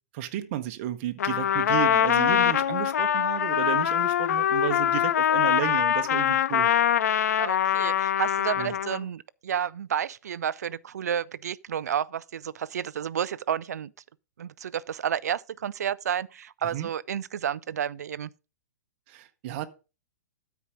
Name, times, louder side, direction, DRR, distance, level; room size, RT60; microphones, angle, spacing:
voice 1, 0.1-6.7 8.5-8.7 16.7-16.9 19.1-19.6, right 12 dB, 45° right, 1.1 m, -32 dB
Trumpet, 1.2-9.0, left 10 dB, 65° left, 0.5 m, -23 dB
voice 2, 7.4-13.9 14.4-18.3, right 9 dB, 70° right, 0.5 m, -31 dB
13.0 x 4.8 x 5.1 m
hypercardioid pair, 125°, 9 cm